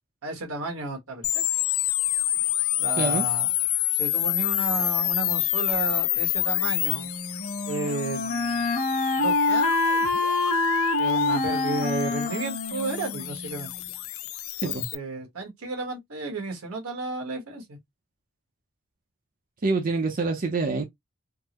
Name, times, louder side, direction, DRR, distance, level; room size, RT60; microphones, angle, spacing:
voice 1, 0.2-1.4 2.8-3.5 3.9-7.1 7.7-8.7 9.2-9.7 11.0-13.7 14.6-17.8, right 3 dB, 85° right, 1.3 m, -33 dB
sound 1, 1.2-14.9, left 15 dB, 70° left, 0.3 m, -28 dB
Wind instrument woodwind instrument, 6.9-13.8, left 3 dB, 40° left, 1.2 m, -26 dB
voice 2, 19.6-20.8, right 3 dB, 40° right, 0.5 m, -26 dB
3.6 x 2.0 x 2.9 m
head